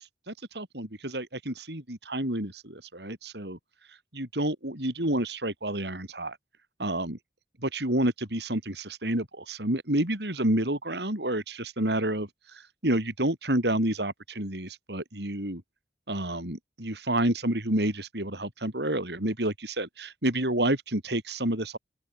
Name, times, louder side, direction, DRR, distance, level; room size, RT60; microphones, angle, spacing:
voice 1, 0.0-3.6 4.1-6.4 6.8-7.2 7.6-15.6 16.1-21.8, right 1 dB, 75° right, 5.4 m, -29 dB
open air
head